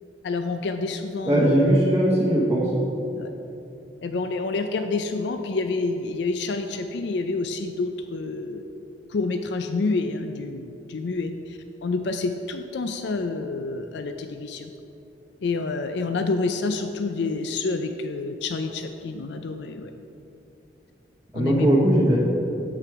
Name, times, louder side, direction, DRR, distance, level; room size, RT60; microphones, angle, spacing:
voice 1, 0.2-1.8 3.1-3.3 4.0-8.6 9.1-14.7 15.4-19.9 21.3-21.7, left 3 dB, 70° left, 7 dB, 0.4 m, -28 dB
voice 2, 1.3-2.7 21.3-22.2, right 1 dB, 10° right, -8 dB, 1.0 m, -19 dB
8.0 x 7.7 x 4.7 m, 2.9 s
head